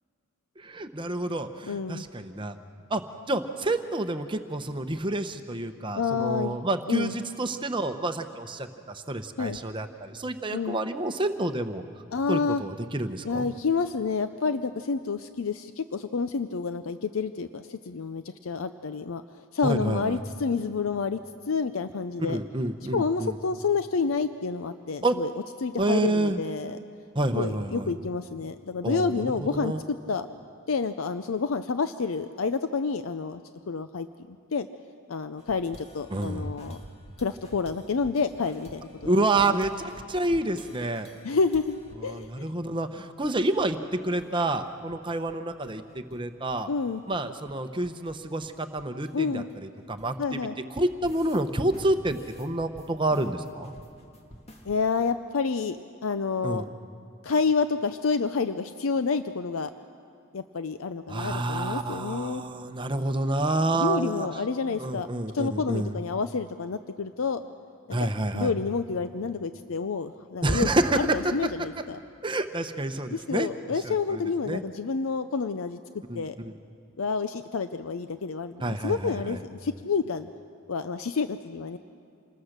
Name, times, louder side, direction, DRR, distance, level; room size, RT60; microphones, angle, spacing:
voice 1, 0.6-2.6 2.9-3.0 3.3-11.8 12.3-13.5 19.6-20.2 22.3-23.3 25.0-25.2 25.8-26.4 27.1-27.9 28.8-29.8 36.1-36.6 39.0-39.7 40.1-41.1 42.0-46.7 47.1-50.4 50.8-53.7 56.4-56.7 61.1-64.3 64.8-65.9 67.9-68.5 70.4-71.3 72.2-73.5 73.8-74.6 76.1-76.5 78.6-79.4, right 2 dB, 25° right, 8 dB, 0.8 m, -28 dB
voice 2, 1.7-2.0 5.9-6.6 6.9-7.1 9.4-9.6 10.5-10.8 12.1-12.6 13.2-21.2 21.5-22.4 22.9-25.3 25.6-26.8 27.3-30.3 30.7-33.4 33.7-34.7 35.1-36.8 37.2-39.6 41.2-42.5 46.7-47.0 49.1-49.5 50.2-50.6 54.7-55.8 56.0-56.7 57.2-59.7 60.3-62.4 63.7-65.1 65.3-67.4 68.0-70.7 70.9-72.0 73.1-75.8 76.1-76.4 77.0-80.3 80.7-81.8, left 5 dB, 75° left, 10 dB, 0.6 m, -29 dB
sound 1, 35.4-42.3 42.6-42.7 43.0-43.7 43.9-44.3 44.6-46.2 46.5-50.4 50.8-51.4 51.7-54.8, equal, 30° left, 1.9 m, -51 dB
27.5 x 20.5 x 6.6 m, 2.5 s
head